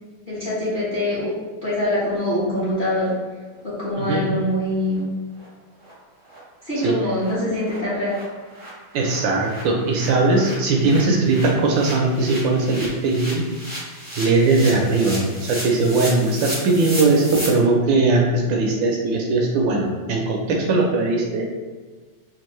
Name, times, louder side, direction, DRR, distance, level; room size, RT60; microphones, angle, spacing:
voice 1, 0.3-1.3 1.6-3.1 3.6-5.0 6.6-8.2, left 1 dB, 35° left, -10 dB, 1.0 m, -24 dB
voice 2, 4.0-4.3 6.8-6.9 8.9-13.4 14.2-21.5, right 3 dB, 75° right, 0 dB, 1.2 m, -19 dB
sound 1, 4.5-4.6 4.9-5.0 5.4-5.5 5.8-5.9 6.3-6.4 6.7-6.8 7.2-7.3 7.6-17.5, right 1 dB, 20° right, 0.5 m, -35 dB
4.4 x 2.4 x 3.0 m, 1.4 s
omnidirectional pair, 2.2 m